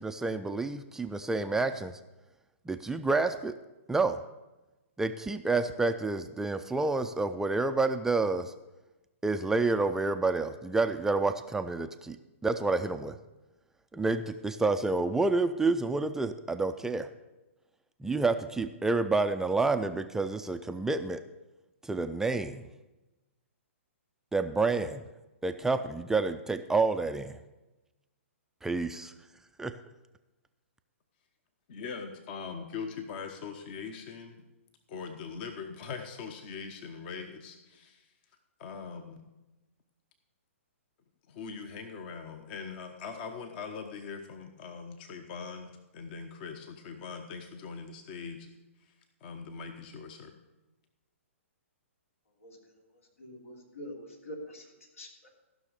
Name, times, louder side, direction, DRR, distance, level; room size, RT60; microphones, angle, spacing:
voice 1, 0.0-2.0 2.7-3.5 3.9-4.2 5.0-8.5 9.2-12.2 12.4-13.2 13.9-17.1 18.0-21.2 21.8-22.6 24.3-25.0 25.4-27.4 28.6-29.1 29.6-29.7, right 3 dB, 5° right, 8 dB, 0.4 m, -29 dB
voice 2, 31.7-34.4 34.9-38.0 38.6-39.3 41.3-48.5 49.2-50.3, left 5 dB, 45° left, 7 dB, 1.0 m, -41 dB
voice 3, 52.4-55.3, left 1 dB, 80° left, 0 dB, 3.0 m, -46 dB
15.0 x 6.2 x 6.7 m, 1.1 s
hypercardioid pair, 125°, 7 cm